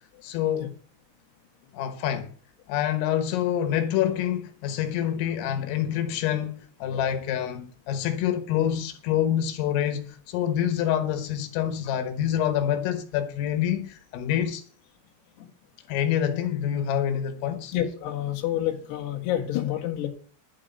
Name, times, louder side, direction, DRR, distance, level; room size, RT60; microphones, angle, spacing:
voice 1, 0.2-0.7 1.7-2.3 2.7-14.6 15.9-17.7, left 10 dB, 85° left, 3.8 m, -26 dB
voice 2, 17.7-20.1, left 12 dB, 65° left, 3.6 m, -28 dB
11.5 x 6.2 x 7.9 m
omnidirectional pair, 5.8 m